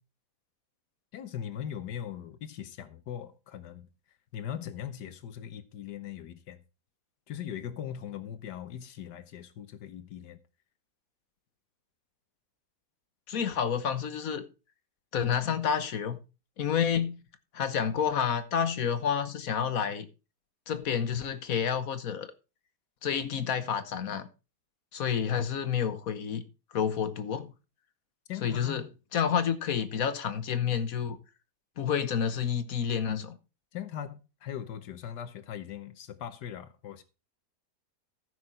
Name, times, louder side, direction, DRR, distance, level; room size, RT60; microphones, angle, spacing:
voice 1, 1.1-3.9 4.3-6.6 7.3-10.4 28.3-28.9 33.7-37.0, left 9 dB, 85° left, 1.5 m, -40 dB
voice 2, 13.3-14.5 15.1-16.2 16.6-17.2 17.5-20.1 20.7-22.3 23.0-24.3 24.9-26.4 26.7-27.5 28.4-28.8 29.1-31.2 31.8-33.4, left 7 dB, 60° left, 1.3 m, -29 dB
13.5 x 6.3 x 4.2 m
omnidirectional pair, 1.8 m